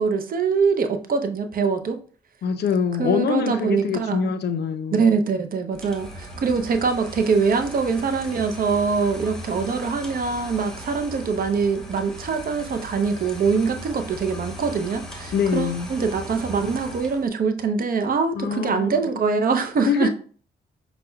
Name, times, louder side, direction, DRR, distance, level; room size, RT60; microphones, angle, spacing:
voice 1, 0.0-2.0 3.0-4.2 4.9-20.1, right 5 dB, 50° right, 0.6 m, -23 dB
voice 2, 2.4-5.1 15.3-15.9 18.3-19.0 19.9-20.1, left 7 dB, 60° left, 0.5 m, -24 dB
sound 1, 5.7-17.3, equal, 5° left, 1.0 m, -38 dB
5.5 x 2.2 x 2.2 m
supercardioid pair, 55°, 20 cm